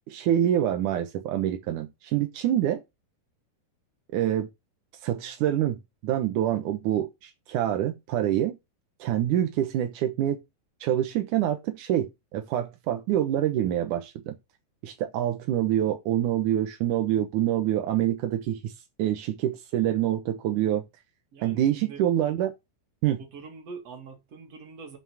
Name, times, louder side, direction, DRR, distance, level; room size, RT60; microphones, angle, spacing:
voice 1, 0.1-2.8 4.1-4.5 5.0-8.6 9.0-10.4 10.8-14.4 14.8-18.7 19.0-20.9 21.4-22.5 23.0-23.2, right 11 dB, 75° right, 1.8 m, -26 dB
voice 2, 21.3-22.0 23.3-25.0, right 5 dB, 40° right, 2.9 m, -43 dB
7.3 x 6.1 x 6.3 m
omnidirectional pair, 5.0 m